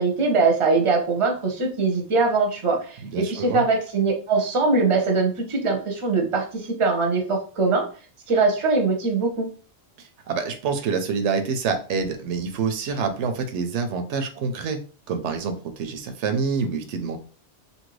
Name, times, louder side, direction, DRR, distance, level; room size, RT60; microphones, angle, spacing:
voice 1, 0.0-7.9 8.3-9.5, right 3 dB, 35° right, 2 dB, 0.6 m, -22 dB
voice 2, 3.1-3.6 10.0-14.8 15.1-17.2, right 5 dB, 85° right, 6 dB, 0.9 m, -27 dB
2.8 x 2.6 x 3.1 m, 0.39 s
omnidirectional pair, 1.2 m